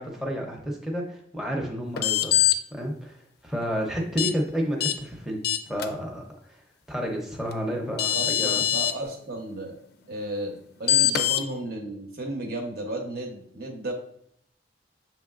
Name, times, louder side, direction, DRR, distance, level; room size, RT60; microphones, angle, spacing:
voice 1, 0.0-2.3 2.7-5.4 5.7-6.2 6.5-6.6 6.9-8.6, equal, ahead, 0 dB, 0.6 m, -30 dB
sound 1, 2.0-2.5 4.2-4.3 4.8-4.9 5.4-5.9 7.5-7.6 8.0-8.9 10.9-11.4, left 12 dB, 60° left, 0.4 m, -22 dB
voice 2, 8.1-9.8 10.1-13.9, right 1 dB, 55° right, 2 dB, 0.9 m, -34 dB
6.3 x 3.0 x 2.4 m, 0.69 s
head